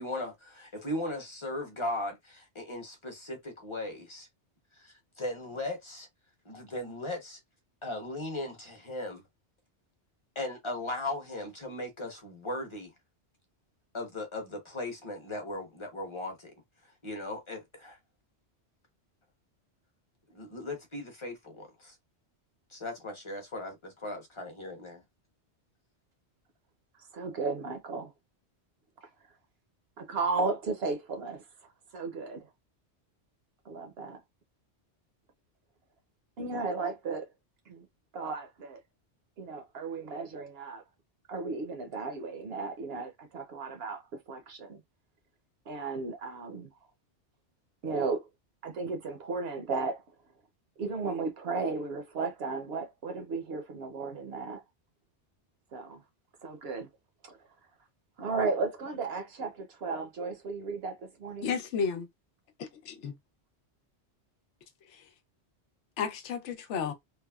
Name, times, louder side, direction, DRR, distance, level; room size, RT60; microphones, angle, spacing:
voice 1, 0.0-4.3 4.8-6.1 6.4-7.4 7.8-9.2 10.3-12.9 13.9-16.5 17.0-18.0 20.3-21.9 22.7-25.0, left 1 dB, 30° left, 0.8 m, -37 dB
voice 2, 27.1-28.1 30.0-31.4 31.9-32.4 33.7-34.2 36.4-37.3 37.7-37.9 38.1-38.8 39.4-40.8 41.3-44.8 45.7-46.7 47.8-48.3 48.6-50.0 50.8-54.6 55.7-56.0 56.4-56.9 57.2-57.4 58.2-61.6, right 4 dB, 65° right, 0.8 m, -34 dB
voice 3, 61.4-62.1 62.6-63.1 64.9-65.0 66.0-66.9, left 6 dB, 90° left, 0.9 m, -33 dB
3.3 x 2.0 x 2.2 m
omnidirectional pair, 1.2 m